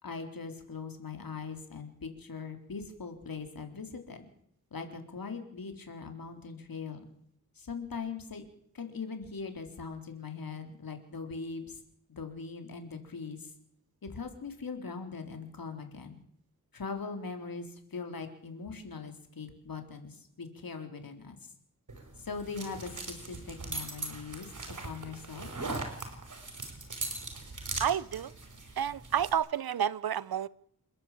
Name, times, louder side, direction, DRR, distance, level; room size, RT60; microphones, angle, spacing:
voice 1, 0.0-4.2 4.7-7.1 7.6-8.4 8.7-11.8 12.1-13.5 14.0-16.2 16.7-21.4 22.2-25.5, left 5 dB, 70° left, 4.0 m, -41 dB
sound 1, 21.9-29.3, right 2 dB, 55° right, 5.5 m, -40 dB
voice 2, 27.8-28.3 28.8-30.5, right 9 dB, 80° right, 0.8 m, -30 dB
29.0 x 11.0 x 8.6 m
wide cardioid pair, 100°, 36 cm